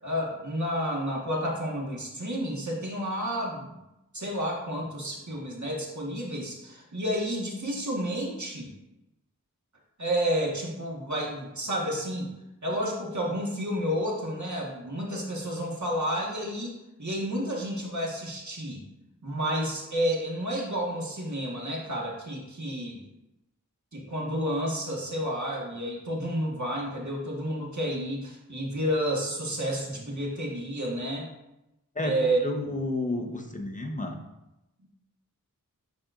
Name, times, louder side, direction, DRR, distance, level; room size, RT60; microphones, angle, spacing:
voice 1, 0.0-3.8 4.1-8.7 10.0-12.3 12.6-18.8 19.2-23.0 23.9-31.3 32.0-32.4, equal, 55° right, -2 dB, 1.7 m, -30 dB
voice 2, 32.4-34.2, left 2 dB, 25° left, 2 dB, 1.0 m, -31 dB
10.5 x 4.3 x 2.6 m, 0.93 s
wide cardioid pair, 45°, 34 cm